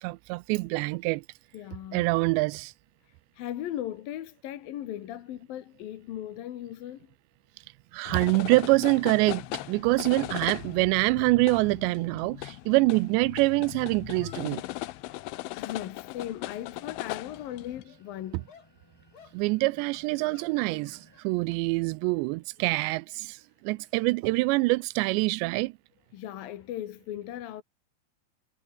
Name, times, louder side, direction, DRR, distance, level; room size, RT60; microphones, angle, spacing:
voice 1, 0.0-1.2 1.9-2.7 7.9-14.6 19.3-25.7, right 24 dB, 85° right, 2.6 m, -25 dB
voice 2, 1.5-2.0 3.1-7.1 15.5-18.5 26.1-27.6, left 12 dB, 60° left, 2.7 m, -38 dB
sound 1, 8.1-17.8, left 19 dB, 90° left, 3.3 m, -38 dB
sound 2, 13.3-13.4 14.1-16.8 17.1-18.0 18.5-18.7 19.1-19.4 19.9-21.6 21.9-22.2 23.4-24.8, left 6 dB, 40° left, 1.9 m, -58 dB
sound 3, 16.1-21.2, left 1 dB, 5° left, 4.0 m, -60 dB
omnidirectional pair, 5.5 m